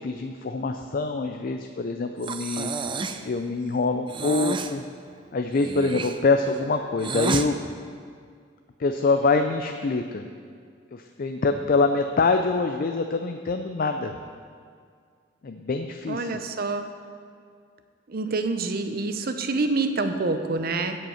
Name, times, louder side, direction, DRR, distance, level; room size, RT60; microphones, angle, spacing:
voice 1, 0.0-2.7 3.2-4.8 5.3-7.6 8.8-10.2 10.9-14.2 15.4-16.3, left 3 dB, 50° left, 6 dB, 0.4 m, -25 dB
Breathing, 2.2-3.3 4.1-4.8 5.5-7.5, right 4 dB, 25° right, 0.4 m, -31 dB
voice 2, 16.1-16.9 18.1-21.0, right 3 dB, 50° right, 7 dB, 0.7 m, -27 dB
16.0 x 5.5 x 5.7 m, 2.1 s
head